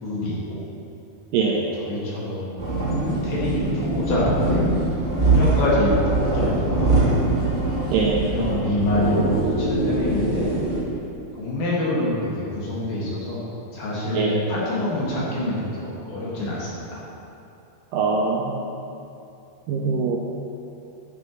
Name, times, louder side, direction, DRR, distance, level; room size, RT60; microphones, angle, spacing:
voice 1, 0.0-0.6 1.6-2.6 3.0-4.6 5.2-7.1 8.1-10.5 11.4-13.5 13.7-17.0, left 1 dB, 65° left, -7 dB, 3.6 m, -26 dB
sound 1, 2.6-10.8, right 2 dB, 40° right, 0.9 m, -23 dB
voice 2, 7.9-8.3 14.1-14.4 17.9-18.7 19.7-20.2, right 4 dB, 80° right, -1 dB, 2.0 m, -22 dB
9.6 x 8.8 x 3.1 m, 2.8 s
omnidirectional pair, 4.4 m